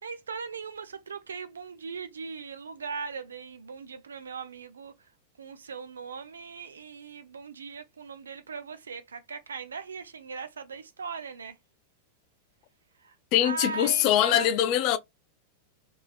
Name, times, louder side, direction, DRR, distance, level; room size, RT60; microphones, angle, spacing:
voice 1, 0.0-5.1 5.4-11.6 13.0-14.6, right 5 dB, 70° right, 0.5 m, -39 dB
voice 2, 13.3-15.0, left 11 dB, 45° left, 0.3 m, -23 dB
3.3 x 2.6 x 2.3 m
figure-of-eight pair, 90°, 0 cm